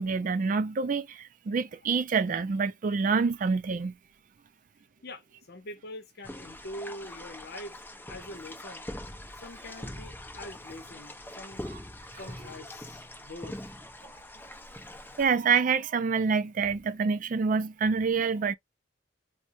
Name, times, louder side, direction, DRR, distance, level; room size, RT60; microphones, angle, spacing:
voice 1, 0.0-4.0 11.7-11.8 15.2-18.5, right 5 dB, 45° right, 0.4 m, -27 dB
voice 2, 5.0-7.8 8.1-8.9 9.4-11.7 12.1-13.6, left 1 dB, 55° left, 0.9 m, -44 dB
sound 1, 6.2-15.3, left 1 dB, 10° left, 0.8 m, -43 dB
4.3 x 2.2 x 2.5 m
head